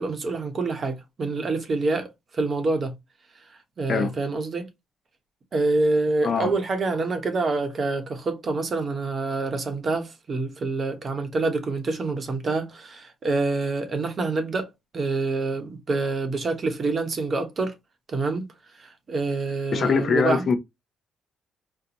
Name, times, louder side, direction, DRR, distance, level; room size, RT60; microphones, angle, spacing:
voice 1, 0.0-2.9 3.8-4.7 5.5-17.7 18.1-18.5 18.8-20.5, right 3 dB, 45° right, 1.0 m, -26 dB
voice 2, 19.7-20.6, left 5 dB, 50° left, 0.7 m, -22 dB
4.2 x 2.2 x 2.8 m
cardioid pair, 90°, 0 cm